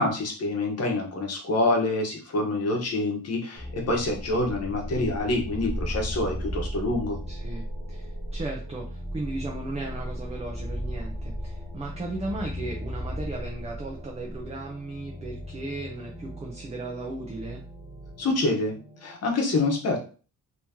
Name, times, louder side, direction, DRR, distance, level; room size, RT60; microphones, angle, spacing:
voice 1, 0.0-7.2 18.2-18.8 19.0-20.0, left 2 dB, 45° left, 1 dB, 1.1 m, -26 dB
sound 1, 3.6-19.1, equal, 5° right, 0.9 m, -36 dB
voice 2, 7.3-17.6, right 2 dB, 20° right, 0 dB, 0.6 m, -36 dB
3.0 x 2.9 x 3.5 m, 0.37 s
wide cardioid pair, 150°, 33 cm